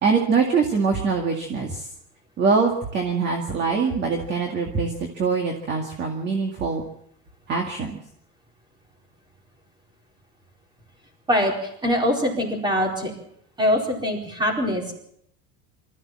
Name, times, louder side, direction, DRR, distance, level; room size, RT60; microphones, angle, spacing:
voice 1, 0.0-1.9 2.4-6.8 7.5-8.0, right 5 dB, 30° right, 3 dB, 2.1 m, -23 dB
voice 2, 11.3-13.1 13.6-14.9, equal, 15° right, 1 dB, 4.5 m, -23 dB
24.0 x 14.5 x 7.5 m, 0.72 s
cardioid pair, 175°, 35 cm